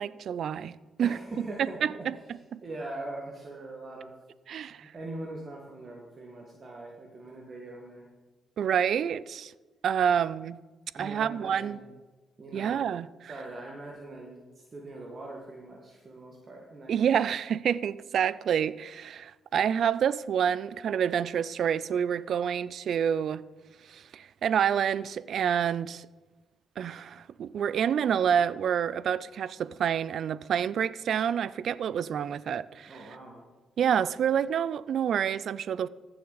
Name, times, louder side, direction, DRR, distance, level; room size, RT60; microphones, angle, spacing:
voice 1, 0.0-1.2 1.8-2.1 2.5-2.6 4.5-4.9 8.6-9.5 9.8-10.6 11.0-11.8 12.5-13.3 16.9-23.4 23.9-26.1 26.8-33.0 33.8-35.9, right 8 dB, 70° right, 0.3 m, -28 dB
voice 2, 1.0-2.2 2.6-4.1 4.8-8.1 10.9-11.9 12.4-12.8 13.3-16.9 32.9-33.4, right 2 dB, 40° right, 1.7 m, -42 dB
14.5 x 6.9 x 4.0 m
cardioid pair, 85°, 0 cm